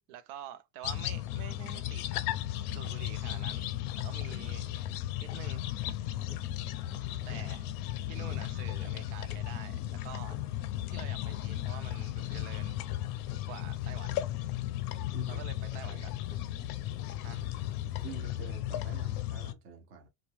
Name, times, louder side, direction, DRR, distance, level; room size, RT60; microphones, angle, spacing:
voice 1, 0.1-2.1 2.7-3.7 4.0-4.6 5.2-5.6 7.3-7.6 8.1-10.4 10.9-12.8 13.5-14.2 15.3-16.1 17.2-17.5, right 10 dB, 75° right, 0.6 m, -47 dB
sound 1, 0.8-19.5, left 13 dB, 70° left, 0.5 m, -35 dB
Tick-tock, 2.9-18.2, left 7 dB, 35° left, 0.7 m, -52 dB
voice 2, 6.9-7.6 15.1-15.4 15.8-16.1 18.0-20.1, right 6 dB, 30° right, 0.4 m, -48 dB
2.6 x 2.2 x 3.1 m
cardioid pair, 165°, 47 cm